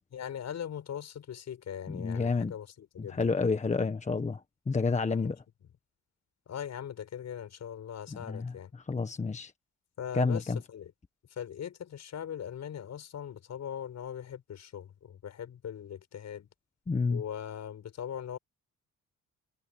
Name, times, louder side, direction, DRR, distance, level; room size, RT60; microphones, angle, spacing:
voice 1, 0.1-3.3 5.1-5.3 6.5-8.7 10.0-10.9 11.3-16.5 17.1-18.4, left 9 dB, 60° left, 7.7 m, -40 dB
voice 2, 1.9-2.5 3.0-4.4 4.7-5.4 8.3-8.5 8.9-9.5 10.1-10.6 16.9-17.2, left 4 dB, 25° left, 1.4 m, -29 dB
cardioid pair, 90°, 30 cm